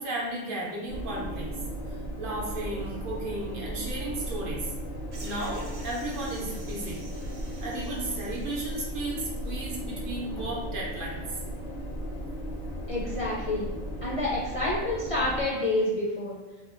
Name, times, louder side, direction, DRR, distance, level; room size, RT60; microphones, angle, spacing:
voice 1, 0.0-1.6 1.9-4.7 5.2-7.0 7.6-11.2, right 2 dB, 60° right, -4 dB, 0.8 m, -34 dB
sound 1, 0.9-15.5, equal, 75° left, 0.8 m, -36 dB
sound 2, 5.1-9.8, right 2 dB, 90° right, 0.9 m, -50 dB
voice 2, 12.9-13.7 14.0-16.4, left 1 dB, 50° left, -6 dB, 0.4 m, -28 dB
2.7 x 2.6 x 2.5 m, 1.1 s
omnidirectional pair, 1.0 m